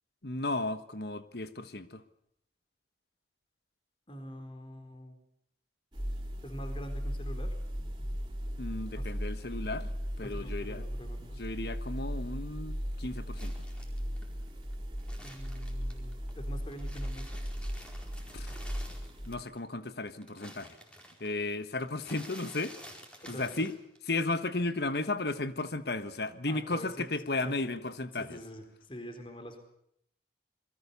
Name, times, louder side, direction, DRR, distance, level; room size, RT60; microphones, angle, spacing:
voice 1, 0.2-2.0 8.6-10.8 11.4-13.5 18.3-18.5 19.3-20.7 21.2-22.7 23.3-23.7 24.1-28.4, left 2 dB, 60° left, 12 dB, 1.4 m, -34 dB
voice 2, 4.1-5.2 6.4-8.1 8.9-9.2 10.2-11.4 15.2-17.4 23.2-23.7 26.5-27.1 27.4-27.6 28.1-29.6, equal, 30° left, 6 dB, 4.4 m, -45 dB
sound 1, 5.9-19.3, equal, 25° right, 4.0 m, -37 dB
sound 2, 13.4-16.3 16.7-19.6 19.8-24.2 24.5-25.4, equal, 5° left, 4.6 m, -51 dB
27.5 x 22.5 x 7.0 m, 0.73 s
head